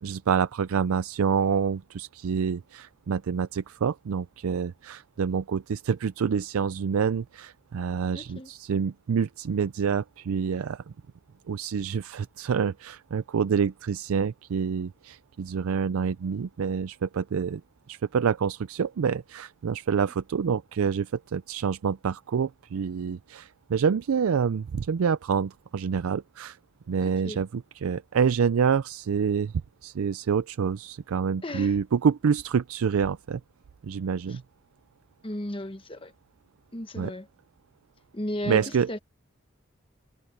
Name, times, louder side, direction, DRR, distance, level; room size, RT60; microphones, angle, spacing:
voice 1, 0.0-10.9 11.5-17.6 17.9-26.6 26.9-29.5 29.8-33.4 33.8-34.4 37.0-37.1 38.5-38.9, right 6 dB, 80° right, 0.4 m, -27 dB
voice 2, 8.1-8.5 20.0-20.1 27.0-27.4 31.4-31.8 34.3-34.4 35.2-36.1 36.7-37.3 38.1-39.0, left 1 dB, 25° left, 1.2 m, -35 dB
head